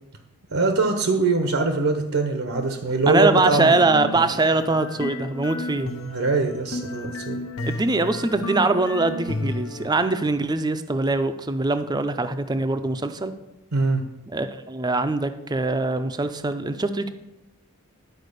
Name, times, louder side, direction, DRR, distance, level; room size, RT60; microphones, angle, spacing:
voice 1, 0.5-3.8 6.0-7.4 13.7-14.1, right 3 dB, 75° right, 5 dB, 0.9 m, -23 dB
voice 2, 3.1-5.9 7.6-13.3 14.3-17.1, right 3 dB, 20° right, 10 dB, 0.5 m, -22 dB
sound 1, 3.4-9.9, left 1 dB, 85° left, 0.9 m, -33 dB
11.0 x 4.6 x 6.6 m, 0.95 s
head